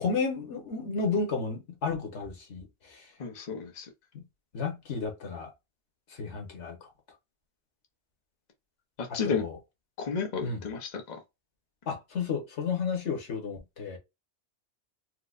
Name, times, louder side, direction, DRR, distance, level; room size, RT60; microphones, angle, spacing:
voice 1, 0.0-3.1 4.5-5.5 6.2-6.9 9.2-9.6 10.4-10.6 11.9-14.0, left 5 dB, 90° left, 1.4 m, -32 dB
voice 2, 3.2-3.9 9.0-9.4 10.0-11.2, left 5 dB, 45° left, 0.8 m, -32 dB
4.6 x 2.0 x 2.4 m
omnidirectional pair, 1.1 m